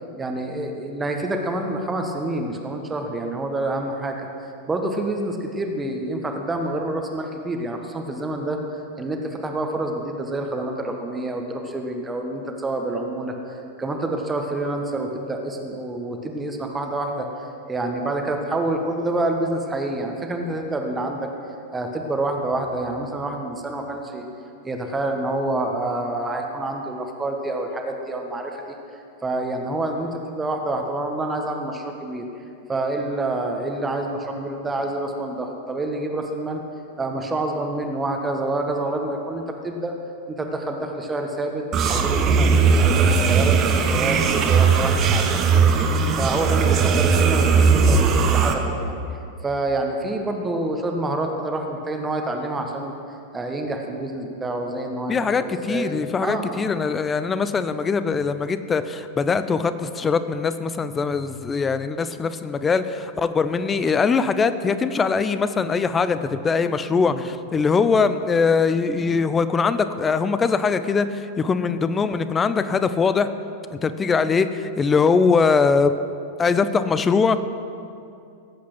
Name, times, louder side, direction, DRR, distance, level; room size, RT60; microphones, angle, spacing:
voice 1, 0.2-8.6 9.0-21.3 21.7-24.2 24.6-32.4 32.7-36.6 37.0-39.9 40.3-45.2 45.5-52.9 53.3-56.0 56.2-56.7 67.0-67.2, right 2 dB, 15° right, 3 dB, 1.3 m, -27 dB
sound 1, 41.7-48.5, right 5 dB, 30° right, 1.2 m, -18 dB
voice 2, 55.1-73.3 73.8-75.9 76.4-77.4, left 5 dB, 20° left, 12 dB, 0.6 m, -21 dB
18.0 x 8.4 x 6.2 m, 2.5 s
figure-of-eight pair, 90°, 0 cm